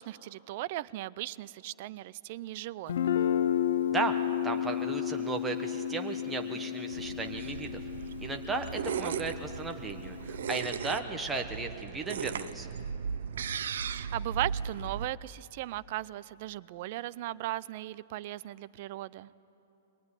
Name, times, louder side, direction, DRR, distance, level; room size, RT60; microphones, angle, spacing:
voice 1, 0.0-3.1 8.9-9.1 14.0-19.3, right 16 dB, 45° right, 18 dB, 0.5 m, -37 dB
Guitar, 2.9-10.6, left 9 dB, 80° left, 0.7 m, -32 dB
voice 2, 4.4-7.8 8.2-12.7, right 3 dB, 5° right, 3 dB, 1.1 m, -35 dB
sound 1, 6.9-15.1, right 7 dB, 80° right, 0.7 m, -37 dB
22.5 x 19.0 x 9.8 m, 3.0 s
hypercardioid pair, 165°, 0 cm